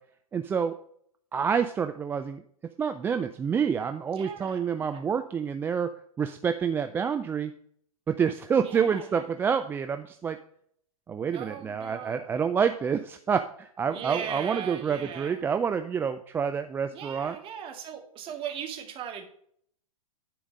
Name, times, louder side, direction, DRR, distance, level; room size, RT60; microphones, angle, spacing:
voice 1, 0.3-0.8 1.3-2.4 2.8-5.9 6.2-7.5 8.1-10.4 11.1-17.4, right 7 dB, 10° right, 8 dB, 0.3 m, -28 dB
voice 2, 4.2-5.0 8.6-9.3 11.3-12.2 13.9-15.5 16.9-19.2, right 8 dB, 30° right, 3 dB, 2.0 m, -39 dB
10.5 x 5.1 x 5.2 m, 0.64 s
hypercardioid pair, 110°, 19 cm